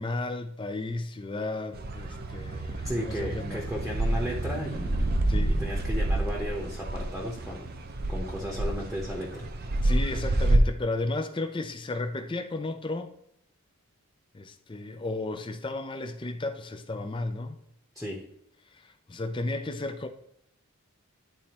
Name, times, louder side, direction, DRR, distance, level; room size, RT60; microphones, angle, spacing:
voice 1, 0.0-3.6 5.3-5.5 9.8-13.1 14.3-17.6 18.7-20.1, left 2 dB, 20° left, 0.5 m, -33 dB
sound 1, 1.7-10.6, right 1 dB, 45° right, 0.6 m, -29 dB
voice 2, 2.8-5.1 5.5-7.7 8.1-9.5 17.9-18.2, equal, ahead, 0.9 m, -34 dB
10.5 x 4.2 x 3.0 m
head